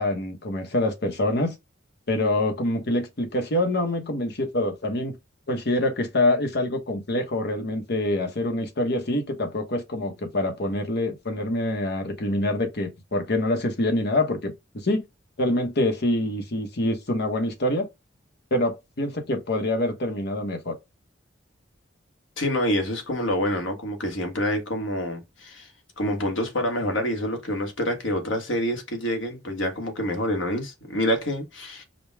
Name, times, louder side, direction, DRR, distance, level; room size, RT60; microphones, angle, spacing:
voice 1, 0.0-1.6 2.1-5.2 5.5-14.5 14.8-15.0 15.4-17.9 18.5-20.8, left 1 dB, 60° left, 1.0 m, -25 dB
voice 2, 22.4-25.7 26.0-31.8, equal, 80° left, 1.5 m, -27 dB
5.1 x 2.3 x 3.4 m
head